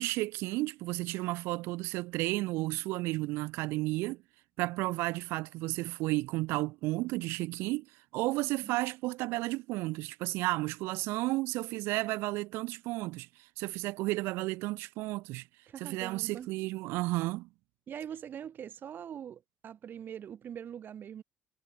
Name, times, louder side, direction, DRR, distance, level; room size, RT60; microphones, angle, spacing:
voice 1, 0.0-4.2 4.6-7.9 8.1-15.5 15.8-17.5, right 20 dB, 80° right, 2.6 m, -33 dB
voice 2, 15.7-16.5 17.9-21.2, right 9 dB, 55° right, 7.3 m, -43 dB
supercardioid pair, 75°, 4 cm